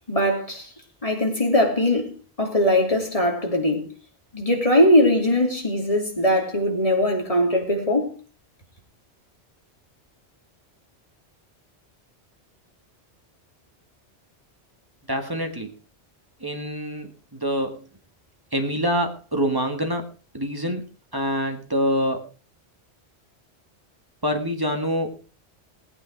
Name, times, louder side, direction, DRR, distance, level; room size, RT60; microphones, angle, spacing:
voice 1, 0.1-0.7 1.0-3.9 4.3-8.1, left 1 dB, 30° left, 3.2 m, -21 dB
voice 2, 15.1-15.7 16.4-17.8 18.5-20.0 20.3-20.8 21.1-22.2 24.2-25.1, equal, 20° right, 1.9 m, -25 dB
18.0 x 8.8 x 4.7 m
omnidirectional pair, 1.1 m